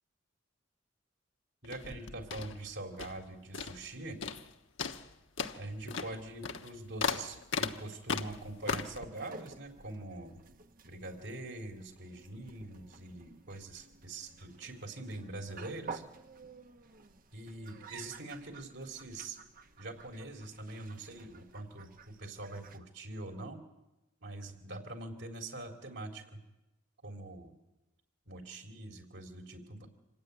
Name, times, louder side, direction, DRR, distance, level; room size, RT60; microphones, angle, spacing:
sound 1, 1.6-3.3 3.5-3.9 4.2-4.5 4.8-9.0, left 5 dB, 80° left, 1.2 m, -37 dB
voice 1, 1.6-4.2 5.5-10.4 10.8-16.0 17.3-19.4 19.8-23.6 24.2-26.4 27.0-27.5 28.3-29.9, right 2 dB, 65° right, 3 dB, 4.0 m, -44 dB
sound 2, 8.1-22.8, right 4 dB, 45° right, 1.2 m, -52 dB
26.5 x 15.5 x 9.8 m, 0.96 s
head